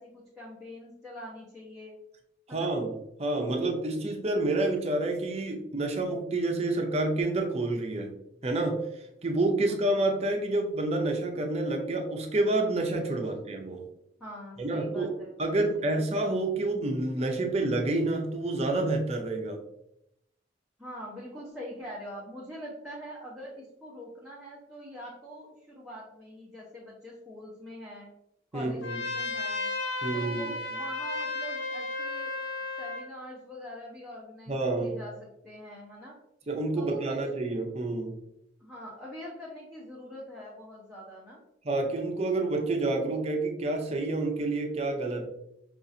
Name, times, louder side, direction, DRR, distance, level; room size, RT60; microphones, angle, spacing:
voice 1, 0.0-2.0 2.5-2.7 9.6-9.9 13.2-13.3 14.2-16.1 20.8-28.1 28.5-29.7 30.1-32.3 32.8-36.2 36.8-37.2 38.6-41.4, equal, ahead, -8 dB, 0.8 m, -44 dB
voice 2, 2.5-2.9 3.2-8.1 8.4-8.9 9.2-13.9 14.6-15.1 15.4-19.6 28.5-29.0 30.0-30.5 34.5-35.0 36.5-38.1 41.6-45.3, right 2 dB, 35° right, 2 dB, 0.6 m, -28 dB
Trumpet, 28.8-33.1, left 2 dB, 65° left, 0.6 m, -34 dB
5.2 x 2.4 x 2.6 m, 0.80 s
head